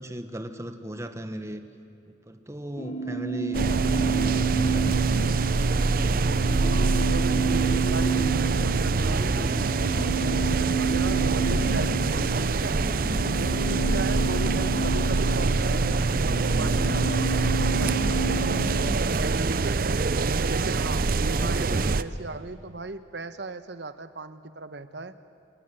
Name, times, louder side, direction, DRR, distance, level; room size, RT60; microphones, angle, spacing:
voice 1, 0.0-1.6 2.1-5.0 20.9-22.0, equal, 15° right, 8 dB, 1.3 m, -37 dB
sound 1, 2.8-19.0, right 4 dB, 40° left, 1.2 m, -30 dB
sound 2, 3.5-22.0, right 3 dB, 50° right, 0.6 m, -25 dB
voice 2, 6.4-9.5 9.9-12.8 13.4-18.6 18.9-20.0 20.4-25.1, right 3 dB, 65° right, 11 dB, 1.1 m, -37 dB
27.5 x 18.5 x 9.2 m, 2.6 s
head